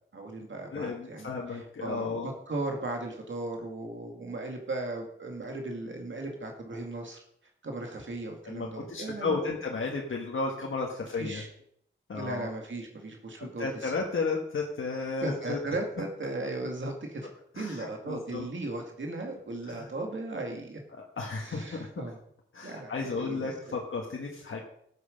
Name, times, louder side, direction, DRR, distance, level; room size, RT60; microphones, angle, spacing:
voice 1, 0.1-7.2 7.6-9.6 11.2-11.5 12.1-13.9 15.2-17.3 17.6-20.8 21.4-22.2 22.6-23.5, right 2 dB, 70° right, 2 dB, 2.2 m, -37 dB
voice 2, 0.7-2.3 8.4-11.4 12.1-12.5 13.4-15.6 17.5-18.5 19.7-19.9 20.9-21.9 22.5-24.6, left 4 dB, 80° left, -1 dB, 1.6 m, -33 dB
13.5 x 8.0 x 5.2 m, 0.69 s
wide cardioid pair, 85°, 20 cm